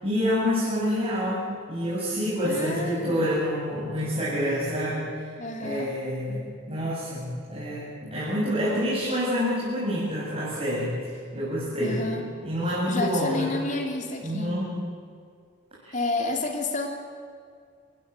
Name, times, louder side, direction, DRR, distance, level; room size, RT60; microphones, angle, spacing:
voice 1, 0.0-5.1 5.6-6.4 6.7-12.0 12.4-13.5 14.2-14.8 15.8-16.0, equal, 30° right, -9 dB, 7.7 m, -27 dB
voice 2, 2.4-3.3 5.4-5.9 11.8-12.3 12.9-14.6 15.9-16.9, left 2 dB, 35° left, 3 dB, 3.1 m, -30 dB
29.5 x 15.5 x 9.2 m, 2.1 s
head